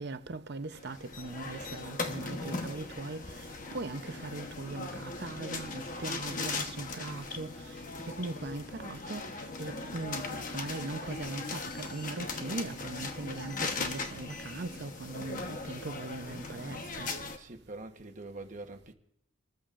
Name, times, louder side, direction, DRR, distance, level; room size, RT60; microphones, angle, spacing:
voice 1, 0.0-3.2 3.7-7.5 8.2-9.3 9.6-17.1, right 3 dB, 55° right, 0.7 m, -40 dB
sound 1, 0.7-17.4, left 3 dB, 40° left, 1.1 m, -39 dB
voice 2, 17.4-18.9, right 2 dB, 35° right, 1.1 m, -44 dB
27.5 x 14.0 x 2.5 m
head